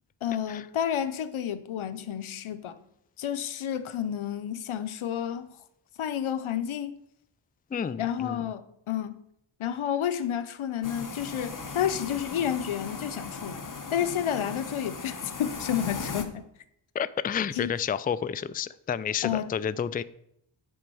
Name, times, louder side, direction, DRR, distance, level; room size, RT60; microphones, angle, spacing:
voice 1, 0.2-2.8 3.2-5.5 6.0-7.0 8.0-9.2 9.6-16.5 17.5-17.7 19.2-19.5, left 9 dB, 85° left, 0.8 m, -30 dB
voice 2, 7.7-8.5 16.9-20.0, left 7 dB, 20° left, 0.3 m, -30 dB
bathroom hand dryer, 10.8-16.2, left 4 dB, 40° left, 1.3 m, -38 dB
9.3 x 4.4 x 6.9 m
cardioid pair, 65°, 47 cm